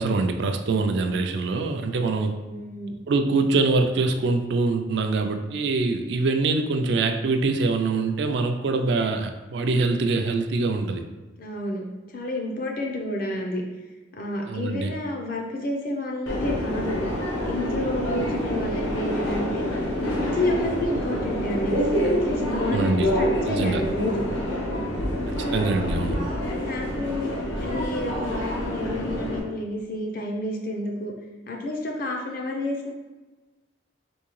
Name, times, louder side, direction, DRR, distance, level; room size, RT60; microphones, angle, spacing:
voice 1, 0.0-2.4 3.1-11.0 14.5-14.9 22.7-23.1 23.5-23.8 25.3-26.2, right 3 dB, 60° right, 6 dB, 0.3 m, -24 dB
voice 2, 2.4-2.9 11.4-13.6 14.2-17.0 17.4-24.2 25.4-25.6 26.5-27.3 27.6-31.1 31.5-32.9, left 1 dB, 45° left, 1 dB, 0.5 m, -30 dB
Subway metro underground, 16.3-29.4, equal, 85° left, 0.8 m, -27 dB
3.6 x 2.7 x 3.1 m, 1.2 s
head